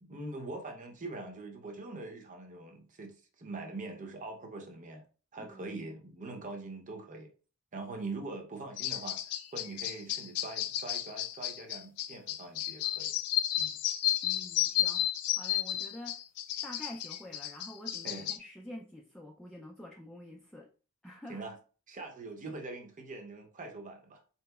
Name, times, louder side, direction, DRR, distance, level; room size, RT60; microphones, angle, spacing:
voice 1, 0.0-5.0 5.3-7.3 7.7-13.1 13.6-13.8 18.0-18.3 21.3-21.6 21.9-24.2, right 2 dB, 35° right, 0.7 m, -43 dB
voice 2, 5.4-5.8 14.2-16.2 16.6-20.7 21.0-21.4, left 1 dB, 5° left, 0.3 m, -47 dB
sound 1, 8.8-18.4, left 13 dB, 85° left, 0.4 m, -33 dB
3.8 x 2.8 x 2.2 m
head